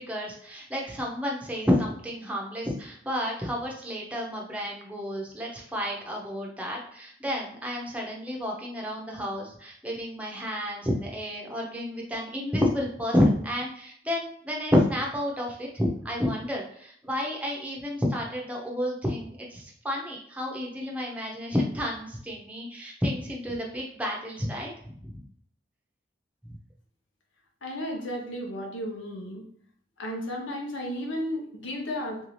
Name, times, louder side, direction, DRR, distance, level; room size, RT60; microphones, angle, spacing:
voice 1, 0.0-24.7 25.0-25.1, left 1 dB, 5° right, -2 dB, 0.7 m, -30 dB
voice 2, 27.6-29.4 30.0-32.2, equal, 85° left, 1 dB, 0.9 m, -33 dB
3.5 x 2.7 x 3.1 m, 0.62 s
head